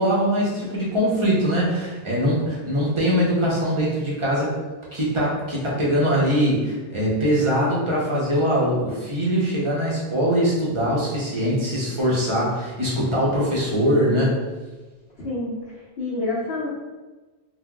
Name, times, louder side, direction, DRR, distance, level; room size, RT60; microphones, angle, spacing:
voice 1, 0.0-4.5 4.9-14.4, equal, 30° right, -6 dB, 0.8 m, -22 dB
voice 2, 15.2-16.7, left 2 dB, 75° left, -11 dB, 1.1 m, -28 dB
3.7 x 2.5 x 2.3 m, 1.2 s
omnidirectional pair, 1.1 m